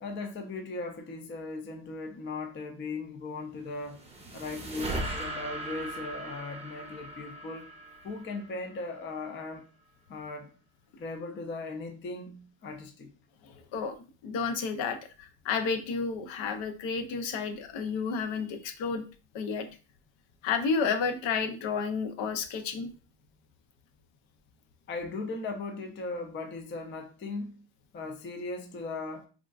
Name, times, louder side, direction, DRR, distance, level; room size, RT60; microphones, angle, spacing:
voice 1, 0.0-4.0 4.3-7.7 8.0-9.7 10.1-10.5 11.0-13.1 24.9-27.6 27.9-29.3, left 3 dB, 25° left, 0.4 m, -38 dB
sound 1, 3.6-9.0, right 1 dB, 15° right, 0.7 m, -39 dB
voice 2, 13.4-14.0 14.2-19.0 19.3-19.7 20.4-22.9, left 5 dB, 70° left, 0.6 m, -31 dB
3.5 x 2.2 x 2.3 m
cardioid pair, 110°, 48 cm